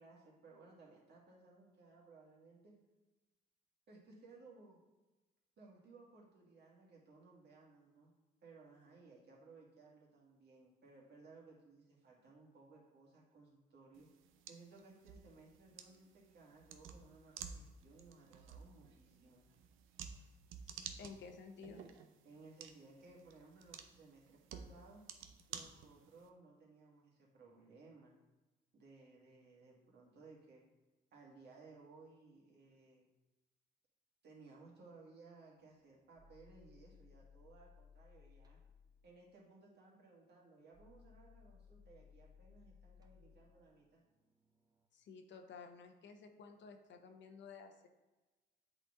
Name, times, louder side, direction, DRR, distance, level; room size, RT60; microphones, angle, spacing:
voice 1, 0.0-2.7 3.9-4.8 5.6-8.1 8.4-14.1 14.5-19.4 22.2-25.0 25.5-28.2 28.7-30.6 31.1-33.1 34.2-38.6 39.0-44.0, right 3 dB, 55° right, -3 dB, 1.9 m, -60 dB
sound 1, 13.9-26.3, right 7 dB, 90° right, 0.6 m, -53 dB
voice 2, 20.7-21.8 44.9-47.9, left 5 dB, 65° left, 5 dB, 0.9 m, -54 dB
sound 2, 35.6-39.0 40.7-44.9, left 6 dB, 20° right, 0.7 m, -63 dB
8.0 x 4.3 x 3.7 m, 1.1 s
cardioid pair, 90°, 20 cm